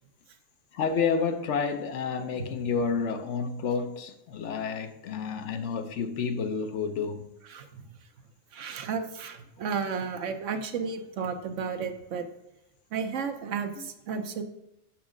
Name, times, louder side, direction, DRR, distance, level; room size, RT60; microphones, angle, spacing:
voice 1, 0.7-7.3 13.8-13.9, left 5 dB, 70° left, 1.0 m, -30 dB
voice 2, 7.5-7.8 8.5-12.3 12.9-14.4, right 6 dB, 75° right, 1.1 m, -33 dB
7.3 x 6.0 x 3.7 m
omnidirectional pair, 1.3 m